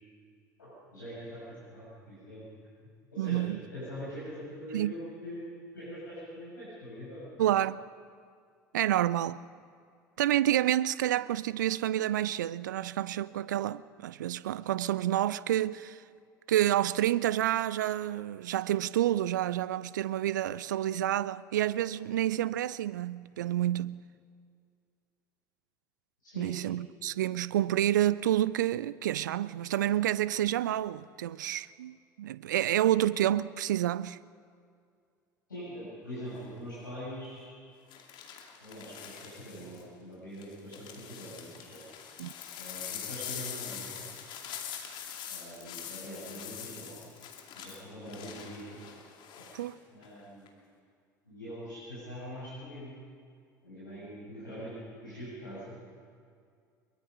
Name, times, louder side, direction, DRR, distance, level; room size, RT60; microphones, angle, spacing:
voice 1, 0.6-2.7 3.1-3.5 3.7-7.2 26.2-26.5 35.5-37.5 38.6-41.8 42.6-44.1 45.3-47.0 47.5-48.8 49.9-50.6 51.2-53.0 53.6-55.8, equal, 80° left, 7.2 m, -43 dB
voice 2, 3.2-3.6 4.7-4.9 7.4-7.8 8.7-9.4 10.2-16.0 16.5-24.0 26.4-34.2 42.2-42.3 49.5-49.8, right 12 dB, 70° right, 0.5 m, -29 dB
sound 1, 36.3-36.6 37.9-39.8 40.4-49.6 50.0-50.5, left 9 dB, 50° left, 2.6 m, -44 dB
22.5 x 22.5 x 5.5 m
figure-of-eight pair, 65°, 10 cm